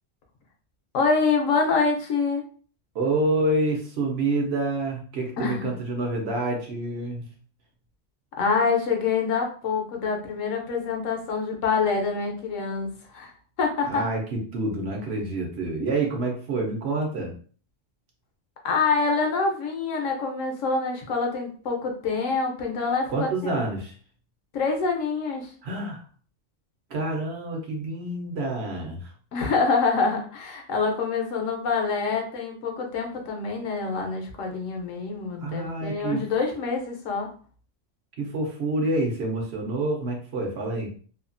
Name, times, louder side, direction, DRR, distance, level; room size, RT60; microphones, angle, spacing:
voice 1, 0.9-2.4 5.4-5.7 8.4-13.3 13.6-14.0 18.6-23.6 24.5-25.5 29.3-37.3, left 4 dB, 80° left, 2 dB, 1.1 m, -26 dB
voice 2, 2.9-7.2 13.9-17.3 23.1-23.9 25.6-26.0 26.9-29.1 35.4-36.2 38.2-40.9, right 2 dB, 60° right, 1 dB, 0.9 m, -27 dB
2.8 x 2.3 x 2.5 m, 0.42 s
omnidirectional pair, 1.3 m